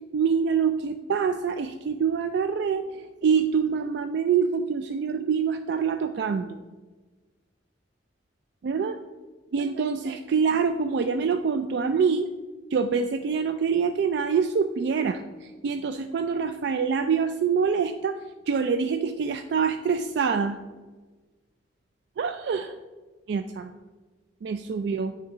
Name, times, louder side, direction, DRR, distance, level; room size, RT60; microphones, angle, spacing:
voice 1, 0.1-6.6 8.6-9.0 9.5-12.3 12.7-20.6 22.2-22.8 23.3-23.7 24.4-25.1, right 6 dB, 65° right, 8 dB, 0.3 m, -25 dB
9.1 x 3.5 x 4.8 m, 1.3 s
head